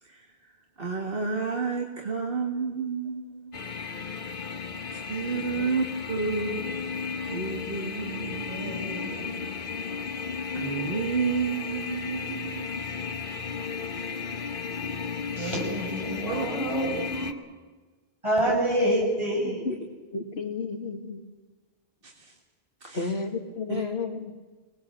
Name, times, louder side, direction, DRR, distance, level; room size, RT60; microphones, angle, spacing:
voice 1, 0.0-3.7 4.9-6.6 7.3-8.7 10.5-12.7 16.3-16.5 22.0-22.3 22.8-23.1 23.7-23.8, right 5 dB, 60° right, 1 dB, 2.0 m, -31 dB
sound 1, 3.5-17.3, left 5 dB, 55° left, 1.3 m, -34 dB
voice 2, 8.5-9.4 15.4-17.4 18.2-19.8, right 1 dB, 30° right, -1 dB, 6.5 m, -28 dB
voice 3, 20.1-21.2 22.9-24.3, left 4 dB, 80° left, 5 dB, 2.3 m, -32 dB
26.0 x 19.0 x 7.6 m, 1.3 s
omnidirectional pair, 1.0 m